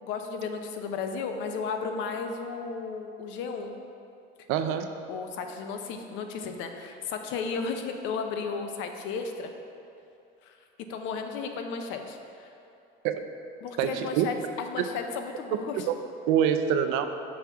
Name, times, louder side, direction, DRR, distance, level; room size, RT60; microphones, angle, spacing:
voice 1, 0.0-3.8 5.1-9.5 10.4-10.6 10.9-12.5 13.6-15.9, left 5 dB, 65° left, 5 dB, 0.6 m, -34 dB
voice 2, 4.5-4.9 13.0-13.2 13.8-14.3 15.9-16.0 16.3-17.1, right 9 dB, 75° right, 8 dB, 0.5 m, -25 dB
6.4 x 5.7 x 3.5 m, 2.7 s
cardioid pair, 160°, 21 cm